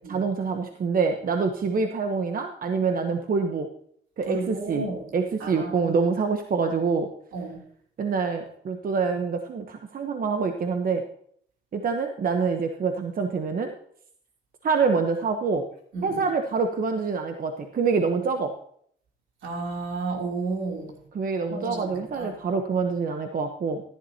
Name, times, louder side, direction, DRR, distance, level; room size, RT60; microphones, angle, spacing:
voice 1, 0.1-3.7 4.2-4.8 5.1-7.1 8.0-11.0 11.7-13.7 14.6-15.6 16.0-18.5 21.1-23.8, right 5 dB, 45° right, 5 dB, 1.0 m, -26 dB
voice 2, 4.2-5.1 5.4-5.9 7.3-7.6 15.9-16.2 19.4-21.0 21.5-22.3, right 3 dB, 80° right, 0 dB, 3.1 m, -32 dB
14.5 x 10.5 x 2.9 m, 0.64 s
cardioid pair, 90°, 20 cm